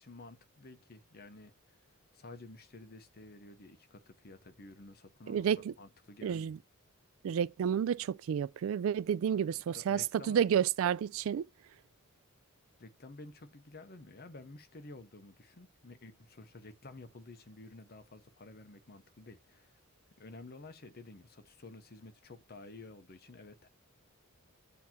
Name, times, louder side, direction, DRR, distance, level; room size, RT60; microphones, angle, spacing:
voice 1, 0.0-1.5 2.1-5.5 5.8-6.6 9.3-10.4 12.8-19.8 20.2-23.7, left 2 dB, 45° left, 0.9 m, -52 dB
voice 2, 5.3-5.7 6.2-6.6 7.2-11.5, right 8 dB, 65° right, 0.3 m, -30 dB
8.4 x 2.9 x 5.8 m
head